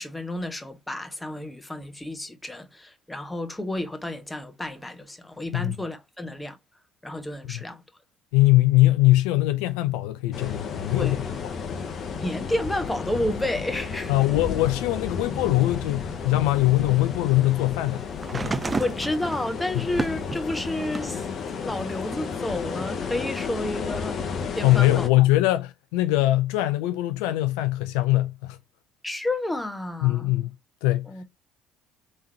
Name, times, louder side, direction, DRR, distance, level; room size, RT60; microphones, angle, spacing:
voice 1, 0.0-6.6 7.0-7.8 11.0-11.2 12.2-14.1 18.8-21.3 21.6-25.1 29.0-30.3 31.1-31.2, left 1 dB, 10° left, 1.2 m, -31 dB
voice 2, 8.3-11.2 14.1-18.0 18.3-18.6 24.6-28.6 30.0-30.5 30.8-31.1, left 17 dB, 75° left, 0.4 m, -22 dB
sound 1, 10.3-25.1, left 5 dB, 50° left, 0.9 m, -32 dB
sound 2, 18.2-21.2 21.7-22.9 23.9-24.0, right 3 dB, 25° right, 0.4 m, -32 dB
3.6 x 3.2 x 4.3 m
hypercardioid pair, 60°, 0 cm